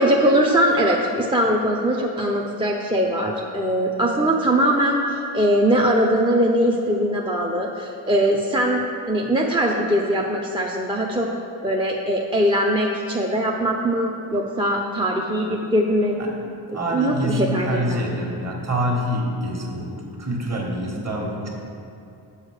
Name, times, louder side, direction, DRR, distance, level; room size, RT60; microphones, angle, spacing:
voice 1, 0.0-8.8 9.1-11.3 11.6-16.2 16.9-18.0, equal, 10° right, -1 dB, 0.4 m, -21 dB
voice 2, 16.7-21.5, equal, 30° right, -1 dB, 1.4 m, -26 dB
6.4 x 4.0 x 6.4 m, 2.6 s
cardioid pair, 85°, 48 cm